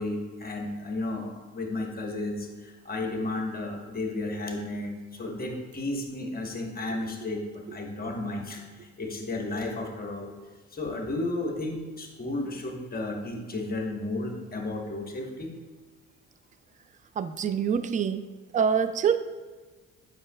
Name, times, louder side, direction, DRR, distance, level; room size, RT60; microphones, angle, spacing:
voice 1, 0.0-10.3 10.7-15.5, left 2 dB, 25° left, 2 dB, 1.1 m, -33 dB
voice 2, 17.2-18.3 18.5-19.2, right 7 dB, 25° right, 12 dB, 0.3 m, -25 dB
7.7 x 5.9 x 2.3 m, 1.3 s
supercardioid pair, 80°, 33 cm